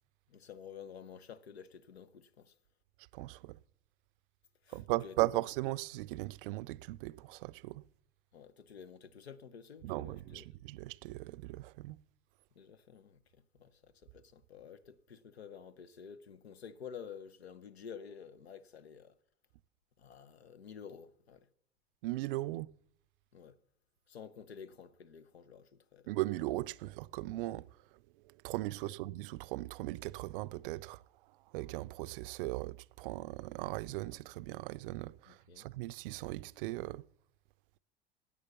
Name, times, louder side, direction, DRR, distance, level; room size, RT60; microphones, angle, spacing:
voice 1, 0.3-2.5 4.6-5.1 8.3-10.4 12.6-19.2 20.0-21.5 23.3-23.6 24.1-26.1 28.8-29.0 35.3-35.7, left 7 dB, 85° left, 0.8 m, -51 dB
voice 2, 3.1-3.6 4.7-7.8 9.8-12.0 22.0-22.7 26.1-31.0 31.5-37.0, right 19 dB, 60° right, 0.5 m, -38 dB
11.0 x 8.4 x 7.0 m
hypercardioid pair, 80°, 31 cm